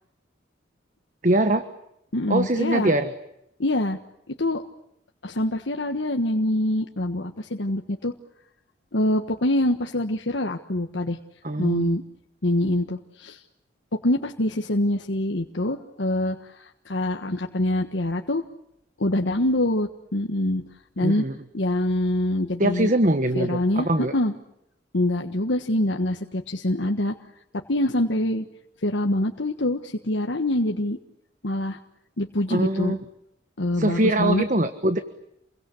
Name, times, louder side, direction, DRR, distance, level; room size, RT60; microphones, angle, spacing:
voice 1, 1.2-1.7 2.3-3.1 11.4-11.9 21.0-21.3 22.6-24.1 32.5-33.0 33.7-35.0, right 1 dB, 45° right, 9 dB, 1.4 m, -22 dB
voice 2, 2.1-2.9 3.6-4.0 4.4-4.6 5.2-8.1 8.9-11.2 11.6-12.0 12.4-13.4 13.9-18.4 19.0-20.6 21.0-21.2 21.5-22.9 23.3-23.9 24.1-24.3 24.9-27.1 27.5-28.4 28.8-31.0 31.4-31.8 32.2-33.0 33.6-34.4, left 1 dB, 75° left, 4 dB, 1.4 m, -25 dB
29.0 x 23.0 x 8.3 m, 0.78 s
head